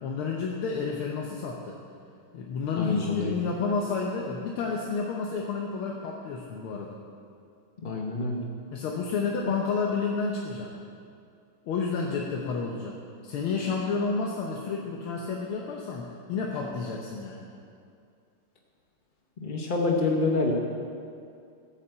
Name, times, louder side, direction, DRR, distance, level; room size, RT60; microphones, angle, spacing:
voice 1, 0.0-1.8 2.3-7.0 8.7-10.8 11.7-17.5, left 4 dB, 80° left, 0 dB, 1.8 m, -30 dB
voice 2, 2.8-3.4 7.8-8.4 19.4-20.5, left 3 dB, 45° left, 0 dB, 0.6 m, -27 dB
13.5 x 7.2 x 7.8 m, 2.4 s
omnidirectional pair, 2.4 m